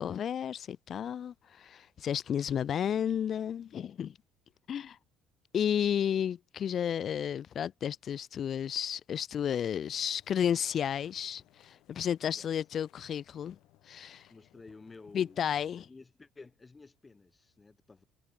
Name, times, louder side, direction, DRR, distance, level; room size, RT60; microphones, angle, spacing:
voice 1, 0.0-4.1 4.7-5.0 5.5-13.6 13.9-14.2 15.1-15.9, left 9 dB, 45° left, 0.8 m, -32 dB
sound 1, 10.0-15.9, left 17 dB, 70° left, 3.2 m, -65 dB
voice 2, 12.2-12.5 14.3-18.0, left 3 dB, 20° left, 4.0 m, -53 dB
supercardioid pair, 100°, 0 cm